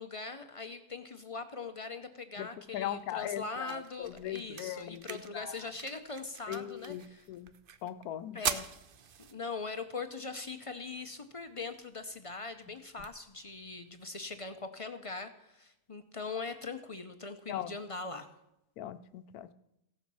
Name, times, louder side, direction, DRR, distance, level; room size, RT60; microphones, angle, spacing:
voice 1, 0.0-7.3 8.3-8.7 9.2-18.3, left 4 dB, 40° left, 8 dB, 0.4 m, -41 dB
voice 2, 2.7-5.5 6.5-7.5 7.8-8.4 17.5-17.7 18.8-19.5, left 12 dB, 90° left, 12 dB, 1.1 m, -39 dB
sound 1, 2.7-14.7, right 7 dB, 55° right, 0.6 m, -45 dB
16.0 x 7.0 x 6.2 m, 0.87 s
omnidirectional pair, 1.5 m